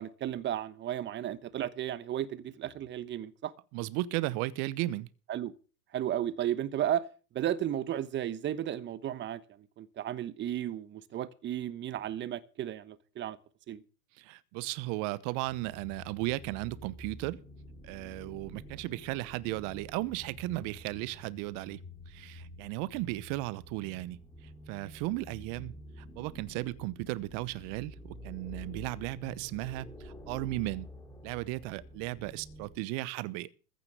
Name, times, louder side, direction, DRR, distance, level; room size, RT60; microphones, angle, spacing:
voice 1, 0.0-3.5 5.3-5.5 5.9-7.0 7.3-13.4 13.7-13.8, right 11 dB, 25° right, 1.0 m, -34 dB
voice 2, 3.7-5.1 14.2-17.4 17.8-21.8 22.1-30.9 31.2-33.5, right 18 dB, 40° right, 1.0 m, -35 dB
sound 1, 15.5-32.8, equal, 5° left, 3.3 m, -49 dB
15.0 x 6.8 x 8.2 m
hypercardioid pair, 110°, 48 cm